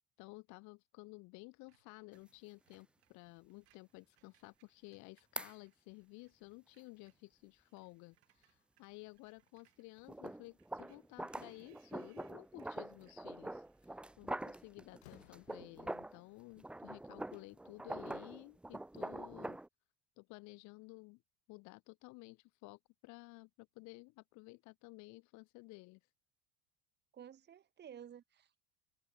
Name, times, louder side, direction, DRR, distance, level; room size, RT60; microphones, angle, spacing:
voice 1, 0.2-19.6 20.2-21.2 21.5-26.1, left 25 dB, 65° left, 1.2 m, -54 dB
Screech, 1.7-6.4 6.6-14.1, right 20 dB, 85° right, 6.6 m, -76 dB
sound 1, 2.1-2.2 2.7-2.8 5.4-5.5 10.0-16.2 16.6-19.7, right 1 dB, 5° right, 0.4 m, -45 dB
Slam, 13.6-13.9 14.3-16.1, left 19 dB, 90° left, 3.1 m, -64 dB
voice 2, 27.1-28.6, right 9 dB, 35° right, 2.1 m, -53 dB
supercardioid pair, 115°, 31 cm